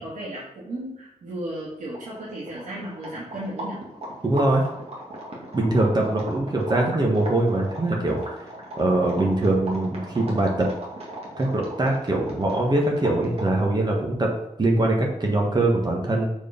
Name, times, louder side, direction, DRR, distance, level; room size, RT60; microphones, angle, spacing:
voice 1, 0.0-3.8, right 1 dB, 80° right, -7 dB, 2.9 m, -34 dB
sound 1, 1.9-13.6, right 1 dB, 50° right, 2.5 m, -38 dB
voice 2, 4.2-4.6 5.5-8.2 8.8-10.7 11.4-14.3 14.6-16.3, right 2 dB, 35° right, -1 dB, 1.5 m, -22 dB
7.6 x 4.7 x 5.3 m, 0.83 s
wide cardioid pair, 150°, 13 cm